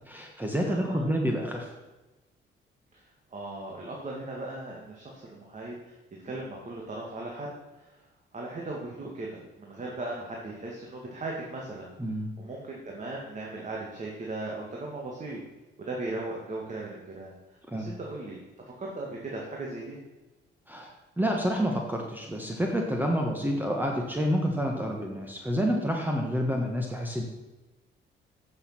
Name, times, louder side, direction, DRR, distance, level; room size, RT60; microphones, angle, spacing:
voice 1, 0.1-1.7 12.0-12.3 17.7-17.9 20.7-27.2, equal, 10° right, 1 dB, 1.5 m, -28 dB
voice 2, 0.7-1.1 2.9-3.0 3.3-6.0 6.2-7.5 7.7-8.0 8.3-11.9 12.4-15.4 15.8-17.3 17.7-20.0, right 2 dB, 40° right, -2 dB, 2.1 m, -38 dB
9.3 x 6.6 x 5.9 m, 1.1 s
cardioid pair, 90°, 20 cm